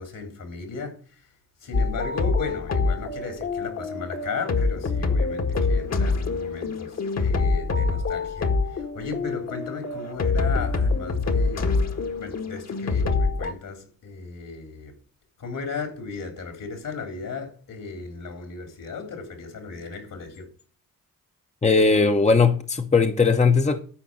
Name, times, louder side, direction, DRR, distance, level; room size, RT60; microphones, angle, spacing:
voice 1, 0.0-1.3 1.6-11.7 12.2-15.0 15.4-20.5, left 4 dB, 65° left, 3.6 m, -35 dB
sound 1, 1.7-13.5, left 4 dB, 45° left, 1.8 m, -25 dB
voice 2, 21.6-23.8, left 4 dB, 20° left, 1.0 m, -19 dB
13.0 x 5.0 x 6.5 m
cardioid pair, 65°, 35 cm